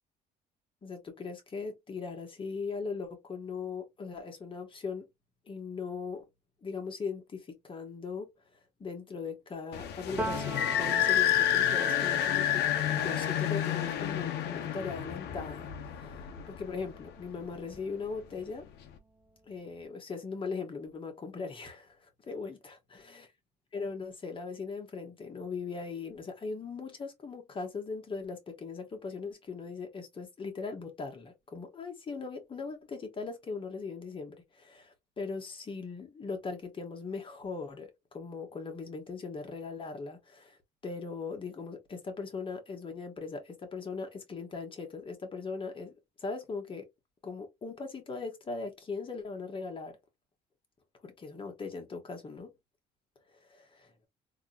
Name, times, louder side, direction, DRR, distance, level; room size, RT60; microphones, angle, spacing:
voice 1, 0.8-5.1 5.5-6.3 6.6-8.3 8.8-18.7 19.5-23.3 23.7-40.6 40.8-46.9 47.2-50.0 51.0-52.5 53.3-53.7, left 4 dB, 30° left, 1.5 m, -39 dB
sound 1, 9.7-17.0, left 11 dB, 80° left, 0.8 m, -30 dB
Piano, 10.2-17.8 18.1-19.7, right 1 dB, 10° right, 0.9 m, -42 dB
3.7 x 2.9 x 2.4 m
cardioid pair, 110°, 17 cm